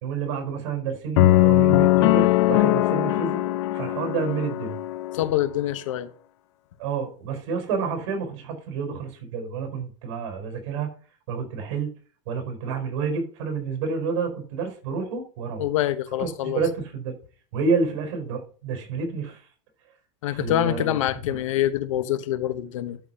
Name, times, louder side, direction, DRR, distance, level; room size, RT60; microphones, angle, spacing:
voice 1, 0.0-3.4 3.7-4.8 6.8-10.9 11.3-11.9 12.3-15.7 16.2-17.1 17.5-19.4 20.3-21.0 21.3-21.4, right 5 dB, 65° right, 4.5 m, -29 dB
sound 1, 1.2-5.3, left 17 dB, 60° left, 0.6 m, -20 dB
voice 2, 5.1-6.1 15.6-16.6 20.2-23.0, left 13 dB, 80° left, 1.2 m, -25 dB
12.0 x 4.2 x 5.6 m
supercardioid pair, 160°, 16 cm